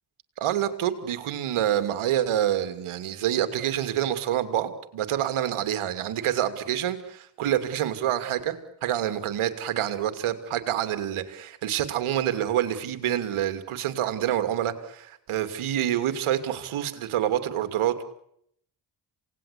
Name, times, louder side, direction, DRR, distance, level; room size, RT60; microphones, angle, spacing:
voice 1, 0.4-18.0, right 11 dB, 75° right, 10 dB, 2.9 m, -27 dB
27.5 x 19.0 x 8.5 m, 0.71 s
supercardioid pair, 55°, 50 cm